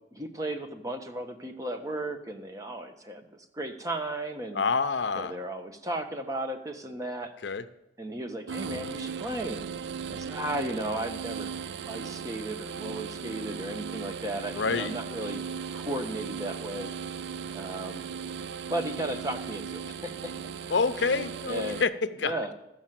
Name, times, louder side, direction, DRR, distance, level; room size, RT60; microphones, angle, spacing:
voice 1, 0.1-4.6 5.1-7.3 8.0-9.6 10.1-11.5 11.9-15.4 15.7-16.9 17.5-18.0 18.7-20.3 21.5-21.8 22.2-22.5, right 1 dB, 20° right, 6 dB, 1.0 m, -35 dB
voice 2, 4.5-5.4 7.4-7.7 14.6-14.9 20.7-22.3, left 4 dB, 85° left, 13 dB, 0.6 m, -27 dB
sound 1, 8.5-21.8, right 6 dB, 75° right, 0.3 m, -37 dB
13.5 x 6.6 x 7.6 m, 0.93 s
head